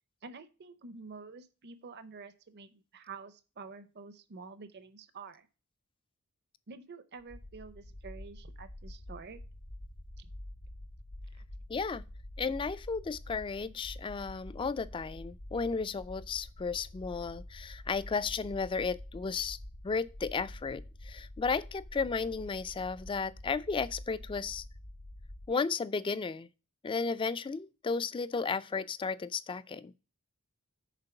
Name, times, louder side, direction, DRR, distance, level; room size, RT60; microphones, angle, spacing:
voice 1, 0.2-5.5 6.7-9.4 10.2-10.3 11.4-11.5, right 4 dB, 50° right, 0.6 m, -48 dB
sound 1, 7.2-25.5, left 1 dB, 75° left, 1.1 m, -47 dB
voice 2, 11.7-12.0 12.4-19.6 19.8-24.6 25.5-26.5 26.8-30.0, left 5 dB, 25° left, 0.3 m, -34 dB
6.7 x 4.4 x 5.7 m
head